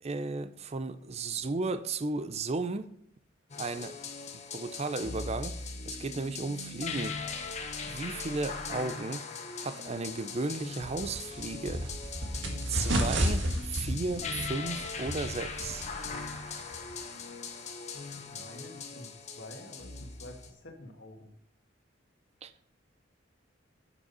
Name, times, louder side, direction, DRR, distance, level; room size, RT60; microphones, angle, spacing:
voice 1, 0.0-2.9 3.6-4.0 4.5-7.2 7.9-9.3 9.5-11.9 12.7-15.9 22.4-22.5, right 3 dB, 35° right, 0.5 m, -35 dB
sound 1, 3.5-20.5, left 4 dB, 35° left, 1.2 m, -40 dB
sound 2, 10.8-17.0, right 1 dB, 65° right, 1.8 m, -33 dB
voice 2, 18.1-21.3, left 1 dB, 65° left, 2.1 m, -48 dB
8.5 x 7.6 x 5.4 m
head